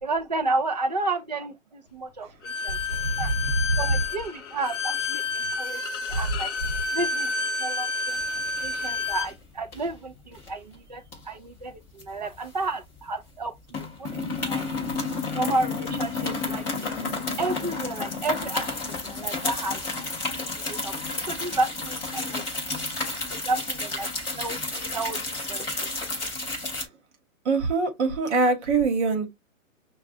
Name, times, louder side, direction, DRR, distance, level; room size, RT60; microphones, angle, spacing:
voice 1, 0.0-2.8 3.2-3.3 3.8-6.5 6.9-7.3 7.6-8.2 8.6-14.1 14.5-14.6 15.3-17.1 17.4-19.8 20.3-22.4 23.3-25.9, right 2 dB, 30° right, 0.4 m, -32 dB
Bowed string instrument, 2.4-9.3, left 4 dB, 55° left, 0.6 m, -30 dB
sound 1, 8.2-8.8 9.1-9.3 9.7-10.5 11.1-13.0 13.3-13.4 13.7-26.8, left 3 dB, 5° left, 0.6 m, -31 dB
voice 2, 27.4-29.3, right 4 dB, 50° right, 1.1 m, -23 dB
5.9 x 2.3 x 2.5 m
hypercardioid pair, 155°, 43 cm